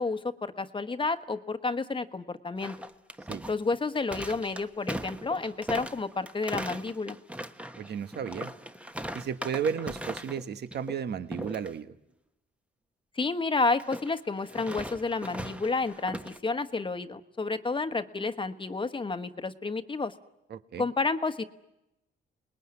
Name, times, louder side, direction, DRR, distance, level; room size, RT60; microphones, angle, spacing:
voice 1, 0.0-2.8 3.5-7.2 13.2-20.1 20.8-21.4, left 3 dB, 25° left, 9 dB, 1.3 m, -30 dB
sound 1, 2.6-10.4 10.7-11.0 11.3-11.7 13.7-16.4, right 1 dB, 5° right, 1.2 m, -39 dB
voice 2, 7.8-8.5 9.1-11.9 20.5-20.9, right 7 dB, 55° right, 11 dB, 1.2 m, -33 dB
29.0 x 20.0 x 9.7 m, 0.92 s
cardioid pair, 90°, 20 cm